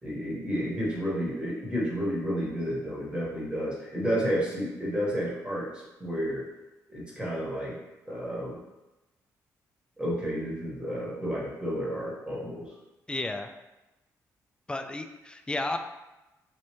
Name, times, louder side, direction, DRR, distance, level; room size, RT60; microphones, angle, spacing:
voice 1, 0.0-6.4 6.9-7.8 8.0-8.6 10.0-12.7, equal, 15° right, -6 dB, 1.5 m, -31 dB
voice 2, 13.1-13.5 14.7-15.8, left 2 dB, 15° left, 6 dB, 0.3 m, -32 dB
3.1 x 2.7 x 3.1 m, 1.0 s
supercardioid pair, 60°, 7 cm